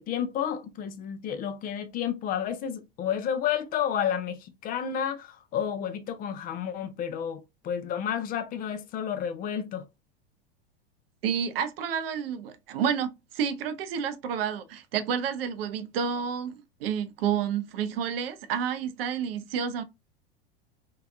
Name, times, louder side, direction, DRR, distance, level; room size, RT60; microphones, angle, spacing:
voice 1, 0.0-9.8, left 9 dB, 30° left, 0.5 m, -31 dB
voice 2, 11.2-19.8, right 7 dB, 70° right, 0.6 m, -30 dB
2.7 x 2.2 x 2.3 m
hypercardioid pair, 90°, 30 cm